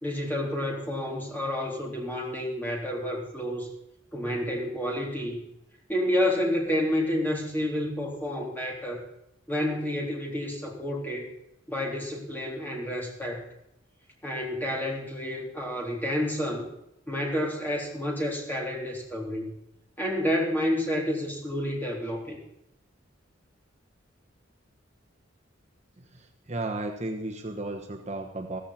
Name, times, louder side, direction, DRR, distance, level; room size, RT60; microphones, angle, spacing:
voice 1, 0.0-3.7 4.1-5.4 5.9-9.0 9.5-11.3 11.7-13.5 14.2-16.7 17.1-19.5 20.0-22.4, left 1 dB, 10° left, -2 dB, 3.6 m, -29 dB
voice 2, 26.0-28.6, right 2 dB, 35° right, 4 dB, 1.2 m, -34 dB
15.0 x 15.0 x 4.2 m, 0.82 s
head